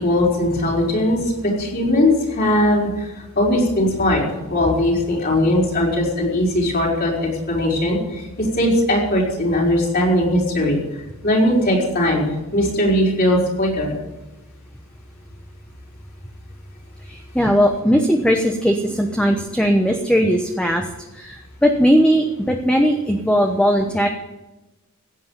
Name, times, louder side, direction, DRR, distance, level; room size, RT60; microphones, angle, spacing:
voice 1, 0.0-3.1 3.3-4.2 4.5-10.8 11.2-14.0, left 1 dB, 45° left, -2 dB, 4.7 m, -19 dB
voice 2, 17.1-20.8 21.2-24.1, equal, 5° left, 3 dB, 1.0 m, -18 dB
16.5 x 8.5 x 7.3 m, 1.0 s
head